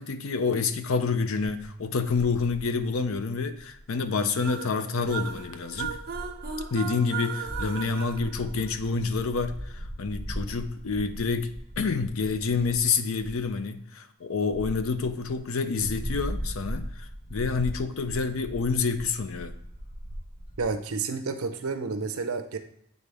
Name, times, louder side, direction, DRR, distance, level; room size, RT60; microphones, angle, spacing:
voice 1, 0.0-6.0 6.7-19.5, left 4 dB, 70° left, 10 dB, 0.6 m, -28 dB
sound 1, 1.6-1.7 2.0-4.1 4.4-4.5 5.0-6.8 7.4-12.9 13.2-13.5 14.5-15.4 15.7-20.7, equal, 25° left, 1.1 m, -39 dB
sound 2, 4.4-9.1, right 7 dB, 45° right, 0.8 m, -37 dB
voice 2, 20.6-22.6, right 4 dB, 75° right, 7 dB, 0.7 m, -30 dB
8.4 x 4.0 x 3.4 m, 0.72 s
head